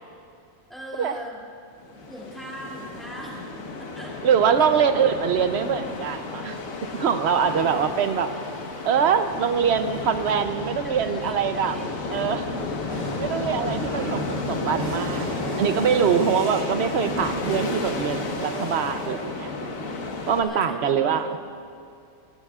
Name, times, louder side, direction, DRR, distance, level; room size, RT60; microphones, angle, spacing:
voice 1, 0.7-1.4 2.1-4.1 4.5-4.8 10.8-12.6 20.4-21.4, equal, ahead, -5 dB, 2.6 m, -41 dB
sound 1, 1.8-20.4, left 3 dB, 90° left, 1.6 m, -32 dB
voice 2, 4.2-6.6 6.9-8.3 8.8-11.8 12.1-12.5 13.2-15.3 15.6-19.5 20.3-21.3, right 7 dB, 60° right, 9 dB, 0.9 m, -23 dB
sound 2, 12.3-20.4, right 1 dB, 40° right, 2.4 m, -37 dB
21.5 x 16.0 x 2.4 m, 2.5 s
omnidirectional pair, 1.4 m